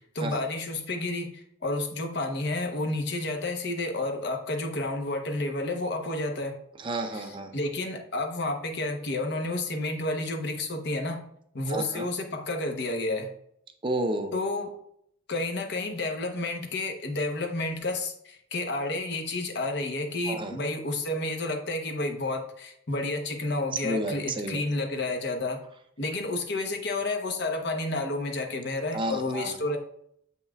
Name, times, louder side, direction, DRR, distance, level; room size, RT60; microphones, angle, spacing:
voice 1, 0.0-6.6 7.1-11.2 11.5-13.3 14.3-14.7 15.3-25.6 26.0-29.8, left 2 dB, 60° left, 3 dB, 0.9 m, -30 dB
voice 2, 6.8-7.5 11.7-12.1 13.8-14.3 20.3-20.5 23.8-24.6 28.9-29.5, right 1 dB, 25° right, 6 dB, 0.5 m, -31 dB
7.3 x 5.6 x 2.3 m, 0.71 s
head